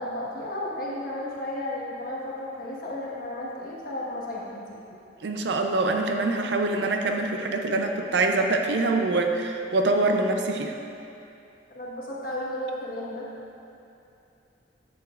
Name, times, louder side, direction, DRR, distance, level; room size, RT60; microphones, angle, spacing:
voice 1, 0.0-4.8 11.7-13.3, left 1 dB, 50° left, -6 dB, 1.4 m, -33 dB
voice 2, 5.2-10.7, right 2 dB, 70° right, 4 dB, 0.5 m, -24 dB
9.4 x 7.1 x 2.4 m, 2.7 s
head